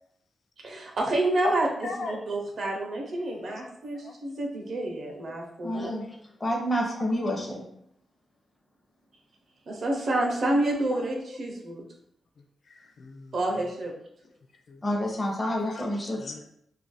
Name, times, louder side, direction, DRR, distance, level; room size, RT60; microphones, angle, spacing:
voice 1, 0.6-1.7 2.1-5.9 9.7-11.8 13.3-13.9, right 1 dB, 55° right, 0 dB, 0.8 m, -28 dB
voice 2, 1.8-2.2 2.8-2.9 3.3-3.6 3.9-4.4 5.3-5.4 5.7-6.2 6.7-7.1 10.6-11.0 12.4-13.3 14.7-14.8 15.5-16.4, left 3 dB, 50° left, 4 dB, 0.4 m, -40 dB
voice 3, 5.6-6.1 6.4-7.7 14.8-16.2, equal, 20° left, 0 dB, 0.8 m, -28 dB
3.0 x 2.5 x 4.0 m, 0.72 s
wide cardioid pair, 140°, 0 cm